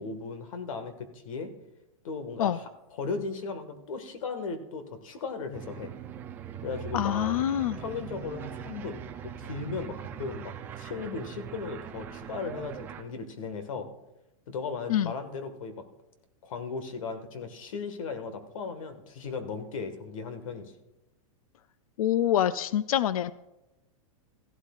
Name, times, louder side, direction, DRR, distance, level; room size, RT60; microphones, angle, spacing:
voice 1, 0.0-1.5 2.0-5.9 6.6-7.3 7.8-13.9 14.5-15.8 16.4-20.7, left 4 dB, 70° left, 8 dB, 1.6 m, -37 dB
sound 1, 5.5-13.0, right 8 dB, 10° right, 0.4 m, -41 dB
voice 2, 6.9-7.8 14.9-15.1 22.0-23.3, left 11 dB, 90° left, 16 dB, 0.4 m, -26 dB
15.5 x 12.0 x 2.4 m, 0.95 s
supercardioid pair, 170°, 18 cm